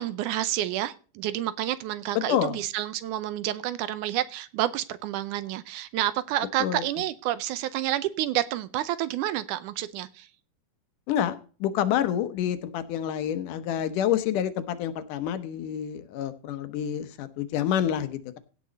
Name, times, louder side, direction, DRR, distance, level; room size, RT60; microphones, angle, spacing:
voice 1, 0.0-10.3, right 13 dB, 75° right, 2.1 m, -29 dB
voice 2, 11.1-18.4, left 10 dB, 75° left, 2.5 m, -28 dB
16.5 x 6.2 x 4.0 m
omnidirectional pair, 3.8 m